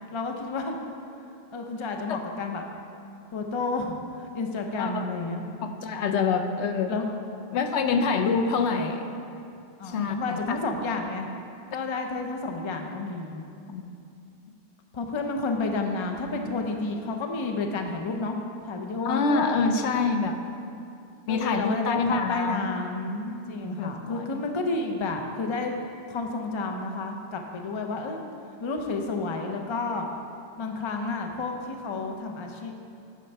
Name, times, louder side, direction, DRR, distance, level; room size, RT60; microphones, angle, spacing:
voice 1, 0.1-0.8 1.5-2.6 3.3-5.4 6.9-7.1 9.8-11.3 11.7-13.4 14.9-18.4 18.6-19.7 21.3-25.7 26.1-28.2 28.6-30.1 30.6-32.7, left 3 dB, 35° left, 3 dB, 0.5 m, -30 dB
voice 2, 4.7-5.1 5.8-6.9 7.5-9.1 9.8-10.6 13.7-13.9 19.0-20.4 21.3-22.7 23.8-24.4, left 4 dB, 80° left, 7 dB, 0.9 m, -26 dB
10.0 x 4.5 x 5.4 m, 2.7 s
omnidirectional pair, 1.1 m